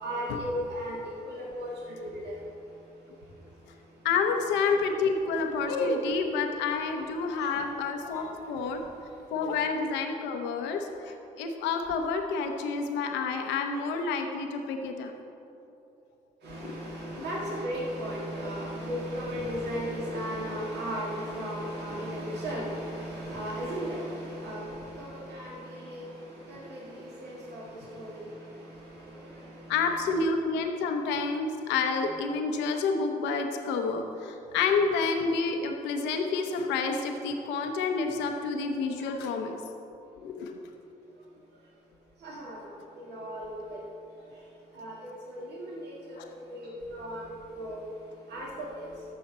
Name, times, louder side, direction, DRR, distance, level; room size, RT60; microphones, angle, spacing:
voice 1, 0.0-1.0 1.3-2.4 7.4-7.5 8.0-8.2 16.4-26.1 26.5-27.6 27.9-28.2 39.0-39.3 42.2-42.6 43.0-43.8 44.8-45.9 46.5-47.2 47.5-47.8 48.3-48.9, equal, 70° right, -4 dB, 1.9 m, -36 dB
voice 2, 4.0-8.8 9.3-15.1 16.6-16.8 17.1-17.2 29.7-39.6 40.2-40.7 46.2-46.3, left 4 dB, 90° left, 4 dB, 0.8 m, -29 dB
14.0 x 5.8 x 4.2 m, 2.8 s
supercardioid pair, 55°, 18 cm